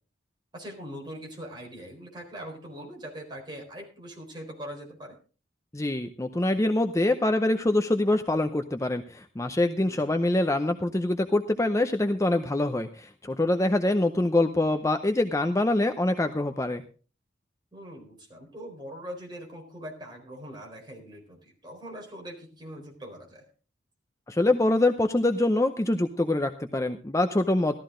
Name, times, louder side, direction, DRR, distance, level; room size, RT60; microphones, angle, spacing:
voice 1, 0.5-5.2 9.8-10.1 17.7-23.5, equal, 25° right, 0 dB, 4.3 m, -42 dB
voice 2, 5.7-16.8 24.3-27.8, left 2 dB, 15° left, 7 dB, 0.6 m, -25 dB
14.0 x 13.5 x 3.8 m, 0.37 s
head